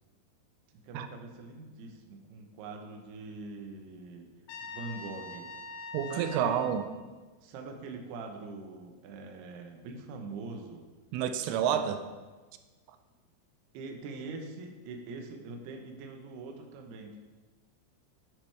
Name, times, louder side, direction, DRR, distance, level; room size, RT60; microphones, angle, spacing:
voice 1, 0.7-4.3 4.6-5.5 6.1-6.5 7.4-10.9 11.6-12.0 13.7-17.2, right 3 dB, 75° right, 3 dB, 2.6 m, -43 dB
Trumpet, 4.5-6.8, left 3 dB, 75° left, 3.2 m, -43 dB
voice 2, 5.9-6.8 11.1-12.0, right 9 dB, 90° right, 8 dB, 3.2 m, -29 dB
9.7 x 9.4 x 3.4 m, 1.3 s
omnidirectional pair, 5.6 m